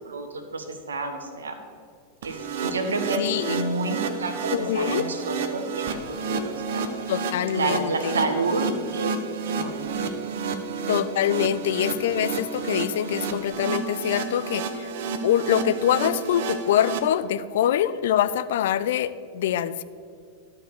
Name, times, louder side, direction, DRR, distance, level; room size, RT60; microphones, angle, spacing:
voice 1, 0.0-1.6 2.2-6.8 7.5-9.1 9.4-9.9, right 3 dB, 70° right, 6 dB, 1.1 m, -29 dB
sound 1, 2.2-17.0, right 5 dB, 50° right, 0.8 m, -30 dB
voice 2, 3.1-3.6 4.5-5.1 7.1-8.2 10.9-14.9 15.2-19.8, left 10 dB, 55° left, 15 dB, 0.4 m, -24 dB
12.0 x 4.7 x 6.7 m, 2.3 s
figure-of-eight pair, 90°, 0 cm